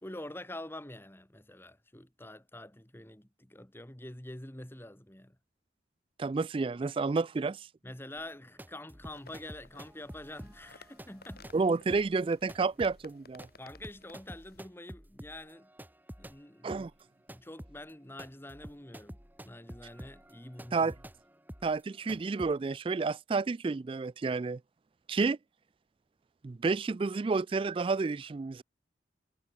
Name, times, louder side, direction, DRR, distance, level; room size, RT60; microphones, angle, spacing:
voice 1, 0.0-5.3 7.8-11.5 13.6-15.7 16.2-16.8 17.3-19.2 19.4-20.9, left 1 dB, 10° left, 1.6 m, -46 dB
voice 2, 6.2-7.7 11.5-13.5 16.6-16.9 20.7-20.9 21.6-24.6 25.1-25.4 26.4-28.6, right 4 dB, 30° right, 0.3 m, -30 dB
sound 1, 8.2-16.4 16.7-22.5, equal, 10° right, 3.4 m, -49 dB
sound 2, 9.1-14.6, left 3 dB, 55° left, 5.8 m, -58 dB
head